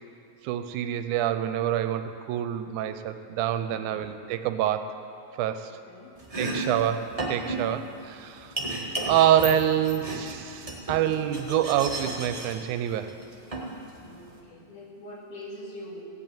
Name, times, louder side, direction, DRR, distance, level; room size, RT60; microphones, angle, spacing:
voice 1, 0.4-4.9 5.4-5.8 6.4-8.5 9.0-13.1, right 11 dB, 85° right, 9 dB, 2.0 m, -26 dB
voice 2, 3.7-4.0 5.6-6.8 14.0-16.0, left 1 dB, 85° left, -4 dB, 3.7 m, -45 dB
Domestic sounds home sounds, 6.2-14.4, right 2 dB, 55° right, 0.4 m, -34 dB
16.0 x 5.6 x 8.9 m, 2.5 s
omnidirectional pair, 3.5 m